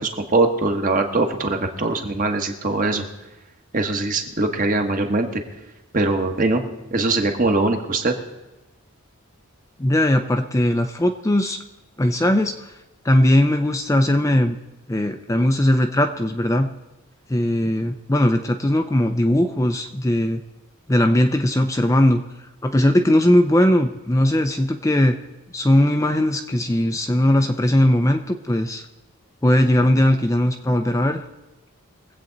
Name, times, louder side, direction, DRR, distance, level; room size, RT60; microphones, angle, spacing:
voice 1, 0.0-3.0 3.7-5.4 5.9-6.6 6.9-8.1, right 2 dB, 40° right, 4 dB, 1.3 m, -21 dB
voice 2, 9.8-11.6 12.0-12.7 13.0-14.6 14.9-16.7 17.3-20.4 20.9-22.2 22.6-25.2 25.5-28.8 29.4-31.2, left 1 dB, 15° left, 5 dB, 0.5 m, -19 dB
22.5 x 8.2 x 3.9 m, 1.0 s
head